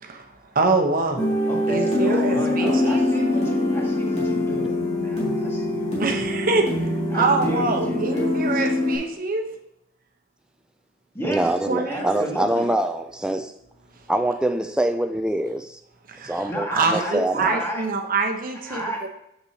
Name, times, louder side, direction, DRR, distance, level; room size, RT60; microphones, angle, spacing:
voice 1, 0.0-1.3 1.7-3.1 6.0-9.6 11.7-12.3 16.1-19.1, right 3 dB, 50° right, 4 dB, 0.9 m, -25 dB
sound 1, 1.2-9.0, left 1 dB, 35° left, 2.4 m, -23 dB
voice 2, 1.4-6.1 7.1-8.4 11.1-11.5 11.9-12.7 16.5-17.8 18.7-19.1, right 1 dB, 10° left, -2 dB, 1.7 m, -32 dB
voice 3, 11.2-13.5 14.1-15.8 16.2-17.6, right 1 dB, 5° right, 6 dB, 0.3 m, -24 dB
7.1 x 6.8 x 2.8 m, 0.80 s
head